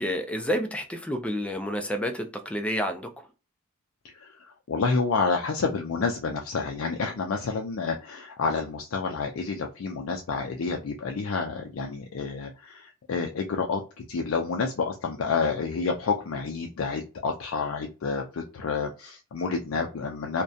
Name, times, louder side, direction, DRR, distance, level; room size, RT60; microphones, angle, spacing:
voice 1, 0.0-3.1, equal, 5° left, 0.4 m, -29 dB
voice 2, 4.1-20.4, left 4 dB, 70° left, 0.4 m, -29 dB
2.6 x 2.1 x 2.3 m
head